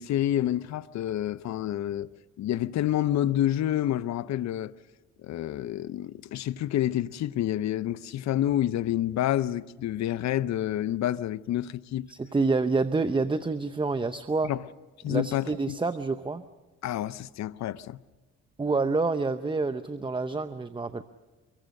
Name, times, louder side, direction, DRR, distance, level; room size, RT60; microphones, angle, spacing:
voice 1, 0.0-2.1 2.4-4.7 5.2-12.1 14.4-14.6 15.0-15.8 16.8-18.0, left 12 dB, 65° left, 0.7 m, -28 dB
voice 2, 12.1-14.5 15.0-16.4 18.6-21.0, right 3 dB, 15° right, 0.7 m, -27 dB
24.5 x 22.5 x 6.5 m
cardioid pair, 90°, 30 cm